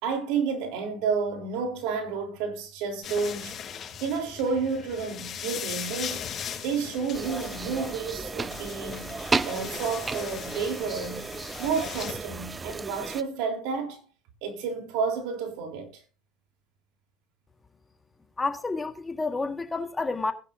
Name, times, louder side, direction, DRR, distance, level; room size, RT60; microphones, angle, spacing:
voice 1, 0.0-3.5 4.0-6.3 6.6-9.1 9.4-11.2 11.6-14.0 14.4-16.0, right 5 dB, 70° right, 3.6 m, -30 dB
sound 1, 3.0-12.1, left 8 dB, 35° left, 5.9 m, -39 dB
sound 2, 7.1-13.2, right 4 dB, 20° right, 0.6 m, -33 dB
voice 2, 18.4-20.3, left 3 dB, 15° left, 1.6 m, -29 dB
18.5 x 10.0 x 2.7 m
supercardioid pair, 100°, 0 cm